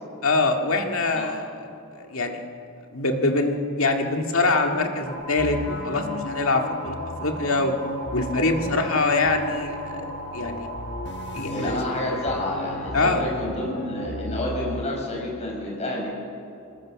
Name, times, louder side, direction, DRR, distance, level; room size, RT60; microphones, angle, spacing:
voice 1, 0.2-1.5 2.0-2.4 2.9-7.7 8.1-10.0 10.3-10.7 11.3-11.8 12.9-13.2, left 3 dB, 70° left, 3 dB, 2.1 m, -24 dB
sound 1, 5.1-12.4, right 2 dB, 75° right, 4.1 m, -38 dB
sound 2, 5.4-14.8, left 2 dB, 55° left, 1.3 m, -35 dB
voice 2, 11.5-16.1, left 1 dB, 30° left, -1 dB, 5.5 m, -29 dB
26.5 x 20.0 x 6.5 m, 2.8 s
head